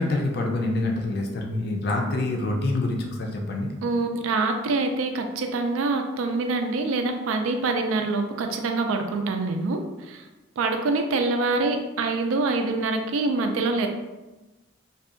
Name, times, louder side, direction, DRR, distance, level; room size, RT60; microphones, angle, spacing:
voice 1, 0.0-3.7, left 2 dB, 50° left, 1 dB, 0.4 m, -26 dB
voice 2, 3.8-9.8 10.1-10.2 10.6-13.9, right 3 dB, 90° right, 5 dB, 0.3 m, -25 dB
2.6 x 2.3 x 2.4 m, 1.1 s
head